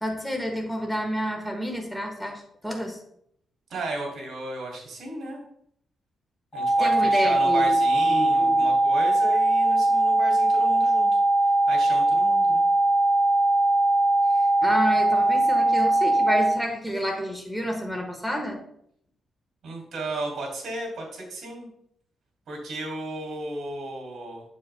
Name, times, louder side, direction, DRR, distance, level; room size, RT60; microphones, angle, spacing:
voice 1, 0.0-3.0 6.8-7.8 8.1-8.6 14.6-18.6, equal, 5° left, 1 dB, 1.3 m, -29 dB
voice 2, 3.7-5.4 6.5-11.1 11.7-12.6 19.6-21.7 22.5-24.4, right 2 dB, 65° right, 0 dB, 2.9 m, -34 dB
sound 1, 6.5-16.5, right 2 dB, 40° left, 2.5 m, -21 dB
7.4 x 7.0 x 2.2 m, 0.70 s
cardioid pair, 135°, 0 cm